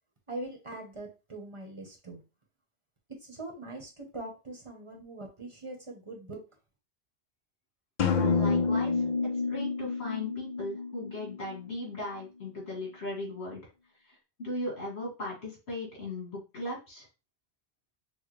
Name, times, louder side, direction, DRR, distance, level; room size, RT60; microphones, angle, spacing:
voice 1, 0.3-2.2 3.2-6.4, right 2 dB, 30° right, 1 dB, 0.9 m, -42 dB
sound 1, 8.0-11.8, left 4 dB, 50° left, 0.6 m, -29 dB
voice 2, 8.1-9.0 9.4-13.6 14.0-17.1, left 1 dB, 70° left, -4 dB, 2.6 m, -38 dB
6.3 x 2.1 x 3.1 m, 0.29 s
omnidirectional pair, 1.1 m